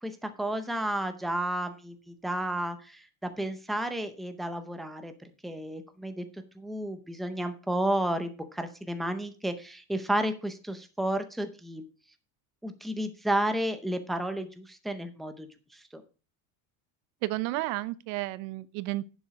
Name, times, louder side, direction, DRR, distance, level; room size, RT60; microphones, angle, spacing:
voice 1, 0.0-6.3 6.5-11.8 12.6-16.0, right 1 dB, ahead, 0.6 m, -32 dB
voice 2, 17.2-19.1, right 18 dB, 90° right, 0.9 m, -32 dB
11.0 x 7.2 x 4.8 m
cardioid pair, 180°, 44 cm